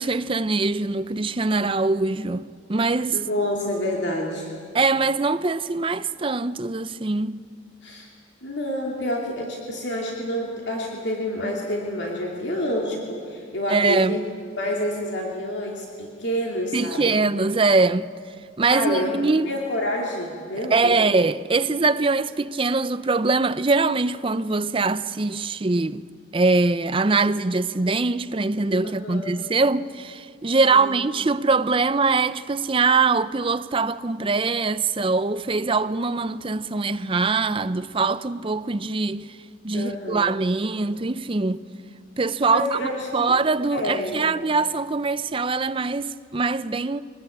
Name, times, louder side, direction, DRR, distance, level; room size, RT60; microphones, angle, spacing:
voice 1, 0.0-3.2 4.7-7.4 13.7-14.2 16.7-18.1 18.6-19.5 20.7-26.0 26.3-39.4 39.6-41.6 42.2-42.8 43.1-47.0, right 3 dB, 25° right, 0.5 m, -23 dB
voice 2, 3.1-4.5 7.8-8.1 8.4-14.2 14.6-17.2 18.7-19.2 19.5-21.1 28.8-29.5 30.7-30.9 39.7-40.3 42.5-43.3 43.7-44.2, left 1 dB, 60° left, 2.7 m, -28 dB
24.0 x 19.5 x 8.7 m
head